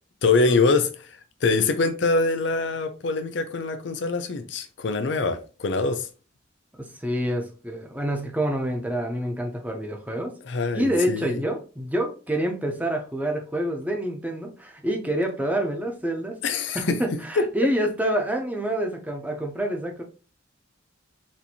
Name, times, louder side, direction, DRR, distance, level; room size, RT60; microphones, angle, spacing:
voice 1, 0.2-6.1 10.4-11.4 16.4-17.2, left 3 dB, 60° left, 0.5 m, -24 dB
voice 2, 6.8-10.3 10.7-16.4 16.7-20.0, right 1 dB, 10° right, 0.5 m, -27 dB
4.2 x 2.5 x 2.8 m
head